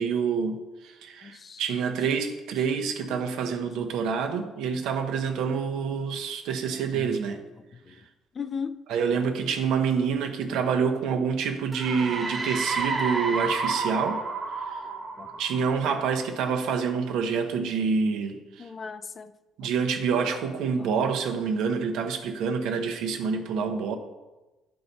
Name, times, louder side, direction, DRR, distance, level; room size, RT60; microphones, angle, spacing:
voice 1, 0.0-7.4 8.9-14.2 14.5-14.8 15.4-18.7 19.6-24.0, right 6 dB, 80° right, 0.9 m, -27 dB
voice 2, 1.2-1.6 6.9-7.1 7.8-8.0 8.3-8.8 15.2-15.3 18.6-19.3 19.6-19.7 20.8-20.9, left 6 dB, 30° left, 0.3 m, -36 dB
sound 1, 11.7-16.3, right 4 dB, 20° right, 0.7 m, -30 dB
11.0 x 4.8 x 4.1 m
cardioid pair, 145°, 0 cm